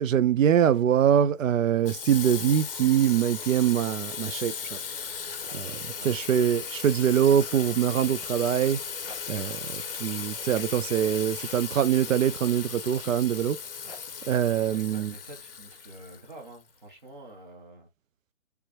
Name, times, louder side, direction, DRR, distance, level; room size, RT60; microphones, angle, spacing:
voice 1, 0.0-4.8 5.5-8.8 9.3-13.6 14.3-15.1, right 9 dB, 90° right, 0.5 m, -24 dB
Water tap faucet / Sink (filling or washing), 1.8-16.6, left 6 dB, 45° left, 0.6 m, -37 dB
sound 1, 3.0-11.2, right 1 dB, 20° right, 1.2 m, -54 dB
sound 2, 5.3-7.0 7.3-9.6 10.0-10.3 10.6-12.2 12.7-15.7, left 1 dB, 5° right, 1.3 m, -56 dB
voice 2, 14.7-17.9, right 1 dB, 40° right, 1.5 m, -47 dB
4.5 x 3.4 x 2.9 m
hypercardioid pair, 175°, 38 cm